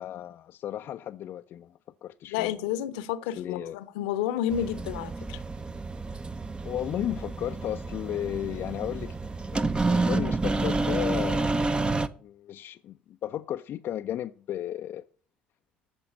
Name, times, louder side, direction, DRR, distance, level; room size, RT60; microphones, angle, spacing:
voice 1, 0.0-1.7 2.0-2.6 3.2-3.8 6.6-11.5 12.2-15.1, left 11 dB, 45° left, 0.5 m, -34 dB
voice 2, 2.3-5.4, left 10 dB, 65° left, 0.9 m, -30 dB
sound 1, 4.5-12.1, right 3 dB, 20° right, 0.8 m, -29 dB
14.0 x 6.1 x 6.6 m
figure-of-eight pair, 55°, 5 cm